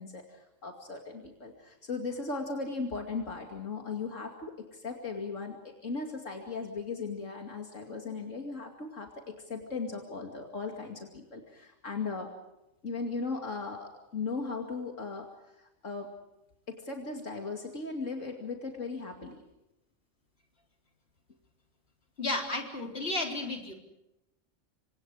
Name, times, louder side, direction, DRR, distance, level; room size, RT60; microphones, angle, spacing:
voice 1, 0.0-12.3 12.8-15.3 15.6-16.1 16.7-19.4, left 4 dB, 80° left, 2 dB, 2.8 m, -37 dB
voice 2, 22.2-23.7, left 2 dB, 50° left, 2 dB, 4.2 m, -33 dB
28.5 x 26.0 x 4.9 m, 0.91 s
omnidirectional pair, 1.3 m